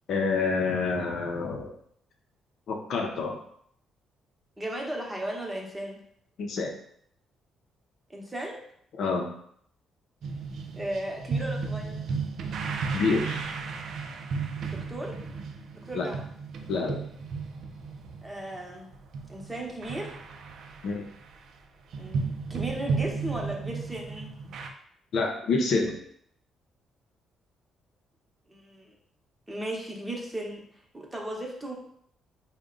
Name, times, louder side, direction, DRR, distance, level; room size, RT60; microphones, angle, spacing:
voice 1, 0.1-1.7 2.7-3.4 6.4-6.7 9.0-9.3 12.9-13.5 15.9-16.1 16.7-17.0 20.8-21.1 25.1-26.0, left 4 dB, 70° left, 2 dB, 0.6 m, -27 dB
voice 2, 4.6-6.0 8.1-8.6 10.7-12.0 14.7-15.2 15.9-16.2 18.2-18.9 19.3-20.1 22.0-24.3 28.5-28.9 29.5-31.7, right 1 dB, 15° right, -1 dB, 0.9 m, -36 dB
sound 1, 10.2-21.6 21.9-24.7, right 5 dB, 70° right, 0.4 m, -34 dB
3.5 x 2.2 x 3.7 m, 0.67 s
cardioid pair, 90°, 0 cm